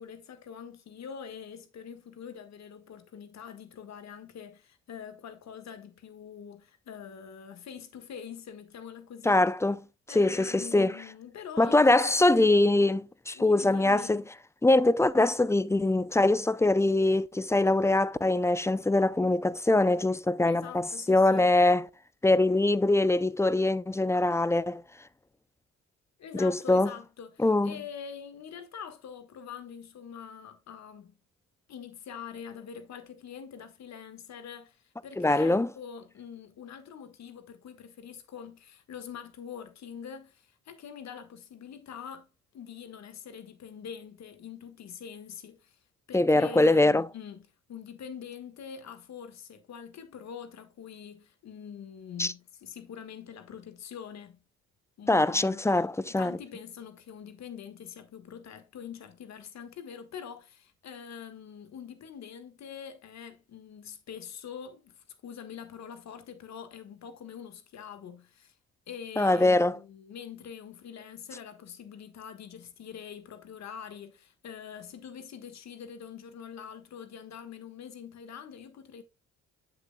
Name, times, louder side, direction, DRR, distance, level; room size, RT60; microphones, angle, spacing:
voice 1, 0.0-9.4 10.1-12.5 13.3-14.2 20.5-21.5 26.2-31.2 31.7-42.3 42.5-45.8 46.1-54.4 55.0-68.6 68.9-79.0, left 7 dB, 60° left, 1.5 m, -44 dB
voice 2, 9.2-9.8 10.1-11.0 11.6-14.2 14.6-21.9 22.2-24.8 26.3-26.9 27.4-27.8 35.2-35.7 46.1-47.1 52.2-52.3 55.1-56.3 69.2-69.8, left 2 dB, 10° left, 0.4 m, -23 dB
7.7 x 6.9 x 2.2 m
cardioid pair, 90°, 30 cm